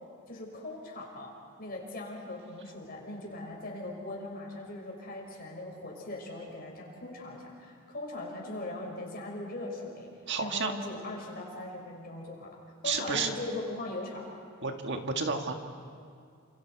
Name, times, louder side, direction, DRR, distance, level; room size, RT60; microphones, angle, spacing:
voice 1, 0.3-10.1 10.4-12.6 12.8-14.3, left 2 dB, 45° left, -1 dB, 5.9 m, -40 dB
voice 2, 10.3-10.7 12.8-13.3 14.6-15.5, right 4 dB, 55° right, 4 dB, 1.8 m, -31 dB
29.5 x 27.0 x 4.8 m, 2.3 s
head